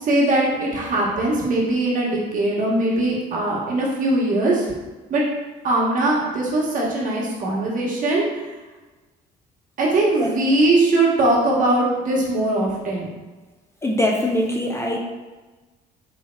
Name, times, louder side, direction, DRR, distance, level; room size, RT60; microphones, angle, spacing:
voice 1, 0.1-4.6 5.1-5.2 5.6-8.2 9.8-13.1, right 2 dB, 50° right, -3 dB, 1.0 m, -20 dB
voice 2, 13.8-15.0, left 1 dB, 15° left, 0 dB, 0.3 m, -22 dB
4.1 x 3.3 x 2.2 m, 1.2 s
cardioid pair, 110°, 17 cm